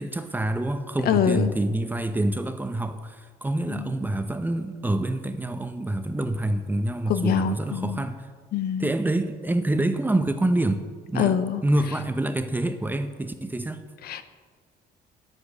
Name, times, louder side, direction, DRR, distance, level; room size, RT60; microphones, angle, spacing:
voice 1, 0.0-8.3 8.8-13.8, right 1 dB, 10° right, 9 dB, 0.8 m, -26 dB
voice 2, 1.1-1.5 3.7-3.9 7.1-8.0 8.5-8.9 11.2-11.6 14.0-14.2, left 9 dB, 65° left, 11 dB, 0.9 m, -24 dB
10.5 x 8.2 x 7.2 m, 1.5 s
cardioid pair, 110°, 17 cm